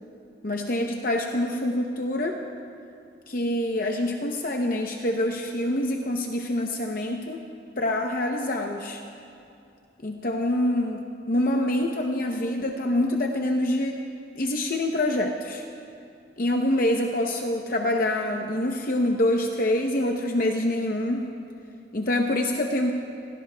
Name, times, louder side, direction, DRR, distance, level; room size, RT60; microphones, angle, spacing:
voice 1, 0.4-2.4 3.3-7.5 7.8-9.0 10.0-14.0 14.4-15.6 16.4-21.3 21.9-22.9, left 1 dB, 45° left, 2 dB, 0.7 m, -26 dB
28.0 x 17.5 x 2.2 m, 2.6 s
head